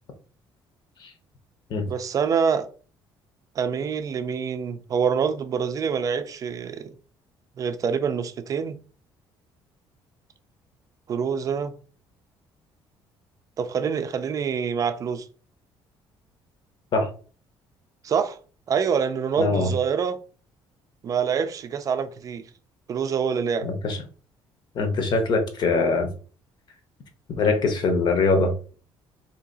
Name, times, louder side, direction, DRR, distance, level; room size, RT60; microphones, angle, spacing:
voice 1, 1.9-2.7 3.6-6.9 7.6-8.8 11.1-11.8 13.6-15.3 18.0-18.4 18.7-20.2 21.0-22.5 22.9-23.7, right 6 dB, 40° right, 0.4 m, -26 dB
voice 2, 19.4-19.7 23.6-24.0 24.8-26.1 27.4-28.5, left 3 dB, 55° left, 0.9 m, -22 dB
2.8 x 2.7 x 4.0 m
cardioid pair, 130°, 9 cm